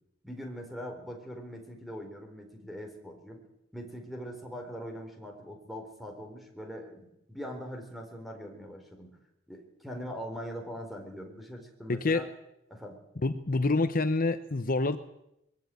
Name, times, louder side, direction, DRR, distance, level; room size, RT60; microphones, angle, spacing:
voice 1, 0.2-9.2 9.5-12.2 12.7-13.0, equal, ahead, 3 dB, 4.2 m, -42 dB
voice 2, 11.9-12.2 13.2-15.0, left 3 dB, 45° left, 10 dB, 0.9 m, -27 dB
21.5 x 15.5 x 9.3 m, 0.84 s
head